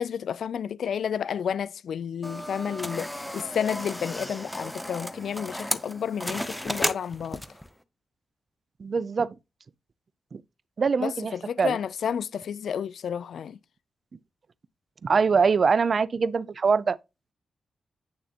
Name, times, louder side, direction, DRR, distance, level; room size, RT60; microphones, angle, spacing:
voice 1, 0.0-7.4 11.0-13.6, left 8 dB, 80° left, 0.3 m, -31 dB
sound 1, 2.2-7.7, left 1 dB, 5° left, 0.5 m, -34 dB
voice 2, 8.8-9.3 10.3-10.4 10.8-11.3 11.6-11.8 15.0-17.0, right 5 dB, 45° right, 0.4 m, -23 dB
8.7 x 6.6 x 2.8 m
wide cardioid pair, 145°, 0 cm